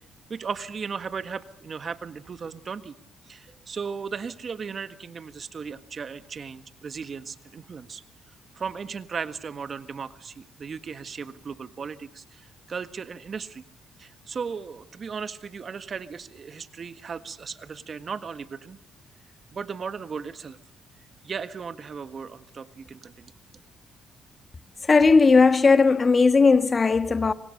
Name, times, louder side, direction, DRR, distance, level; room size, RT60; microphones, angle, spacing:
voice 1, 0.3-3.0 3.3-8.0 8.6-13.6 14.0-18.8 19.5-20.6 21.2-23.3, right 6 dB, 45° right, 1.6 m, -36 dB
voice 2, 24.8-27.3, left 4 dB, 30° left, 1.5 m, -17 dB
25.5 x 25.5 x 6.6 m
cardioid pair, 90°, 0 cm